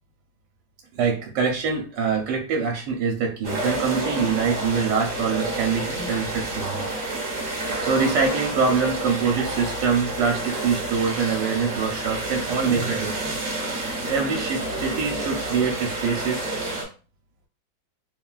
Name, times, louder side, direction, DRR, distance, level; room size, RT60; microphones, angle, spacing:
voice 1, 0.9-7.2 7.8-13.4 14.0-16.5, right 5 dB, 70° right, 1 dB, 1.2 m, -25 dB
sound 1, 3.4-16.8, right 2 dB, 45° right, 1.1 m, -29 dB
3.4 x 2.2 x 2.3 m, 0.36 s
omnidirectional pair, 2.1 m